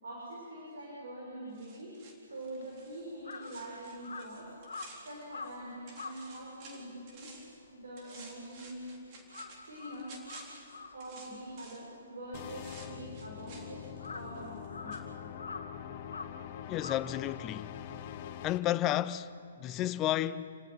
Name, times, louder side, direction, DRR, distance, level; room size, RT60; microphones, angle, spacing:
voice 1, 0.0-1.9 2.3-4.5 5.0-8.9 9.6-10.1 10.9-15.2, right 1 dB, 75° right, 6.9 m, -44 dB
sound 1, 1.5-5.6 5.9-7.6 8.0-12.0 12.3-14.7 14.9-15.0, right 3 dB, 35° right, 3.8 m, -54 dB
Crow, 2.3-8.8 9.1-17.8, left 4 dB, 80° left, 1.6 m, -47 dB
sound 2, 12.3-18.6, left 9 dB, 40° left, 1.2 m, -44 dB
voice 2, 16.7-17.8 18.4-20.6, left 13 dB, 25° left, 0.7 m, -32 dB
29.0 x 18.5 x 5.9 m
hypercardioid pair, 130°, 0 cm